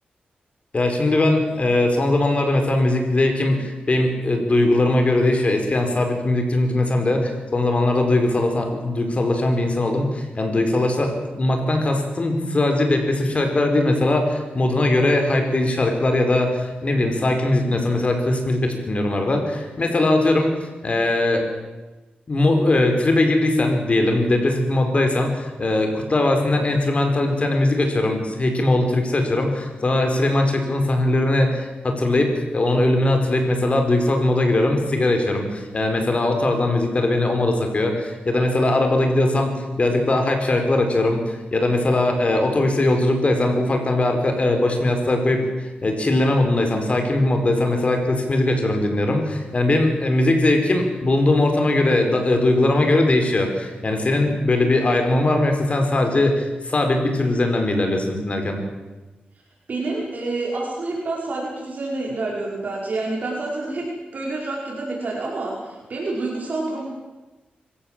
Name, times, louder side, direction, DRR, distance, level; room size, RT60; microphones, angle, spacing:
voice 1, 0.7-20.5 20.8-21.4 22.3-58.6, left 2 dB, 40° left, 4 dB, 4.8 m, -20 dB
voice 2, 59.7-63.9 64.1-66.8, right 2 dB, 55° right, -3 dB, 5.3 m, -28 dB
25.0 x 15.5 x 7.6 m, 1.2 s
cardioid pair, 85°, 3 cm